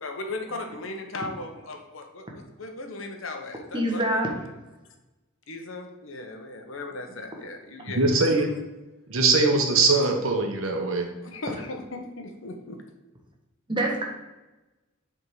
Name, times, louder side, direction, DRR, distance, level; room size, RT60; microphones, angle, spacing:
voice 1, 0.0-4.3 5.5-8.6 11.2-12.8, left 2 dB, 70° left, 4 dB, 1.0 m, -37 dB
voice 2, 3.7-4.3 7.3-7.4 13.7-14.0, right 1 dB, 25° right, 0 dB, 1.2 m, -25 dB
voice 3, 7.9-8.5 9.1-11.1, right 3 dB, 75° right, 3 dB, 1.1 m, -21 dB
7.7 x 3.7 x 4.8 m, 1.1 s
head